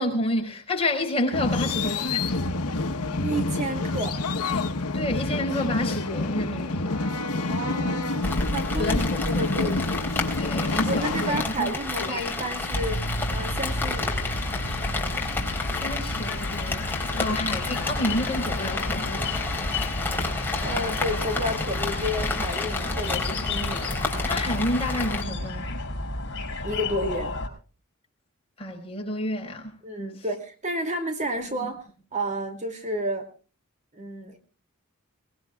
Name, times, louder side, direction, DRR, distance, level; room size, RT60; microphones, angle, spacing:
voice 1, 0.0-2.4 4.9-6.9 8.8-9.1 10.4-11.7 12.0-12.3 15.7-16.8 17.2-19.3 23.8-24.0 24.2-25.8 28.6-29.7, left 1 dB, 25° left, 5.0 m, -29 dB
sound 1, 1.3-11.4, left 2 dB, 90° left, 1.1 m, -28 dB
voice 2, 3.2-4.2 7.5-10.0 10.8-13.0 13.3-14.3 17.1-17.4 20.6-23.9 26.6-27.3 29.8-31.8 32.1-33.3 33.9-34.4, right 1 dB, 35° right, 2.5 m, -31 dB
Rain, 8.2-25.2, left 3 dB, 10° left, 3.6 m, -30 dB
sound 2, 12.7-27.5, left 2 dB, 55° left, 5.6 m, -32 dB
22.5 x 21.0 x 2.3 m
head